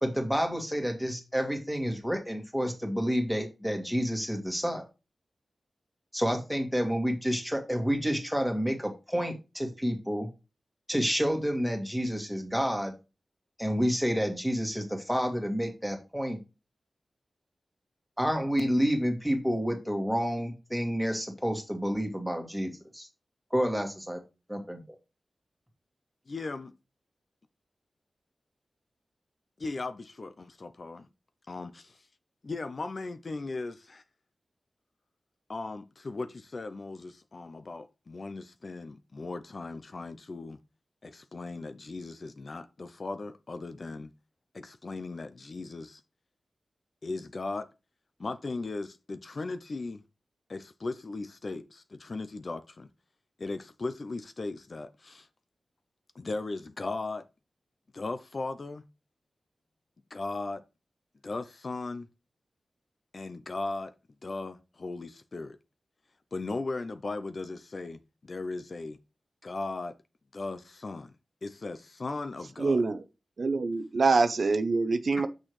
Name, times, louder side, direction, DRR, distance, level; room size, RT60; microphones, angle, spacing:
voice 1, 0.0-4.8 6.1-10.3 10.9-12.9 13.6-16.4 18.2-23.1 23.5-24.2 24.5-24.8, equal, ahead, 2.1 m, -29 dB
voice 2, 26.3-26.7 29.6-31.1 31.5-32.1 32.4-34.0 35.5-40.6 41.0-44.1 44.5-46.0 47.0-47.7 48.2-50.0 50.5-52.9 53.4-55.3 56.1-57.3 57.9-58.8 60.1-60.6 61.2-62.1 63.1-63.9 64.2-65.6 66.3-69.0 69.4-70.0 70.3-71.1 71.4-72.8, left 3 dB, 50° left, 0.6 m, -37 dB
voice 3, 72.6-73.0 73.4-75.3, right 3 dB, 60° right, 0.6 m, -25 dB
6.4 x 6.2 x 3.2 m
wide cardioid pair, 85°, 0 cm